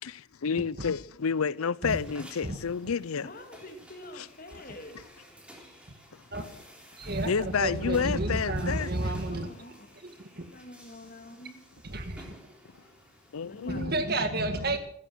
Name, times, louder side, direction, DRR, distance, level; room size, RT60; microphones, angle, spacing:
voice 1, 0.0-3.3 4.2-4.3 7.3-8.9 13.3-14.0, left 6 dB, 85° left, 0.6 m, -30 dB
sound 1, 1.8-13.8, equal, 5° right, 3.5 m, -53 dB
voice 2, 3.2-5.0 9.3-11.6 13.5-13.9 14.7-14.8, left 1 dB, 40° left, 2.6 m, -47 dB
voice 3, 7.0-9.7 10.0-10.5 11.8-12.3 13.7-14.8, right 2 dB, 45° right, 1.9 m, -31 dB
16.0 x 14.0 x 6.2 m
head